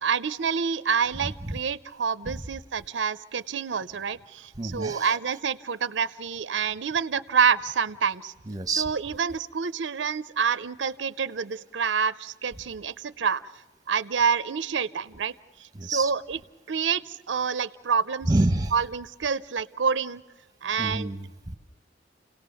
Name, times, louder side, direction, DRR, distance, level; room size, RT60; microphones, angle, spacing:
voice 1, 0.0-8.3 8.8-13.4 13.9-15.3 15.6-16.4 16.7-18.3 18.7-20.2 20.6-21.1, right 6 dB, 85° right, 15 dB, 0.6 m, -27 dB
voice 2, 1.2-1.5 2.3-2.4 4.6-5.2 8.5-8.9 15.7-16.1 18.3-18.7 20.8-21.5, right 2 dB, 20° right, 9 dB, 1.1 m, -28 dB
30.0 x 17.5 x 6.9 m, 1.2 s
head